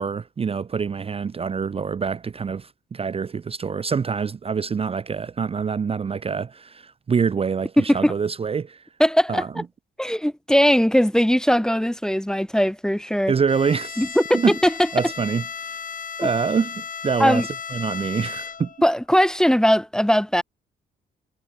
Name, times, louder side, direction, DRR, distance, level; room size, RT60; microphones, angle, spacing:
voice 1, 0.0-8.8 9.3-9.6 13.3-14.0 14.3-14.6 14.9-15.8 16.2-18.7, right 6 dB, 30° right, 0.6 m, -25 dB
voice 2, 7.8-8.1 9.0-9.4 10.0-13.3 14.0-14.9 16.2-16.3 17.2-17.5 18.8-20.4, equal, 5° left, 0.9 m, -19 dB
Bowed string instrument, 13.5-18.9, left 7 dB, 45° left, 2.1 m, -35 dB
cardioid pair, 90°, 20 cm